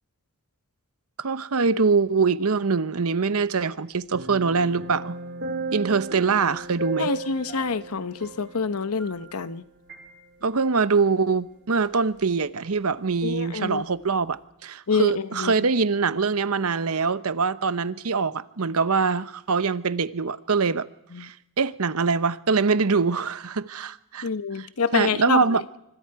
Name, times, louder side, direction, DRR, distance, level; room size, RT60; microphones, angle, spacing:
voice 1, 1.2-5.2 5.7-7.1 10.4-20.9 21.2-24.3 24.6-24.7 24.9-25.6, right 4 dB, 80° right, 0.9 m, -23 dB
sound 1, 4.1-9.6 9.9-10.1, right 3 dB, 50° right, 3.7 m, -35 dB
voice 2, 7.0-9.6 13.2-13.8 14.9-15.5 21.1-21.3 24.2-25.4, left 5 dB, 85° left, 0.9 m, -27 dB
25.5 x 25.0 x 4.7 m
head